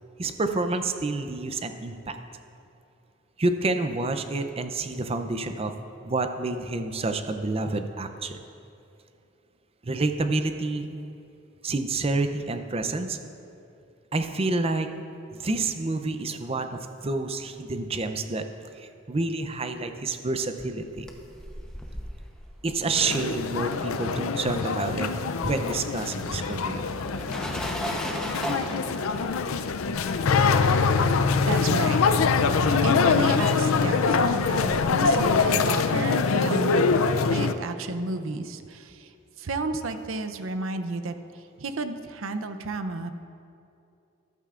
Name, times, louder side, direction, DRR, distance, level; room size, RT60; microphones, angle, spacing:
voice 1, 0.2-2.2 3.4-5.7 6.0-8.4 9.8-11.0 11.6-13.2 14.1-14.9 15.4-18.4 18.8-21.1 22.6-25.1 25.4-26.8 28.4-28.6 35.8-35.9, right 3 dB, 30° right, 8 dB, 0.5 m, -28 dB
sound 1, 20.7-24.4 24.6-35.4, equal, 5° left, 0.8 m, -39 dB
sound 2, 23.0-37.5, left 5 dB, 85° left, 0.5 m, -24 dB
voice 2, 31.4-32.3 32.8-36.9 37.3-39.1 39.4-43.1, right 3 dB, 75° right, 8 dB, 0.6 m, -32 dB
14.0 x 12.0 x 2.5 m, 2.6 s
head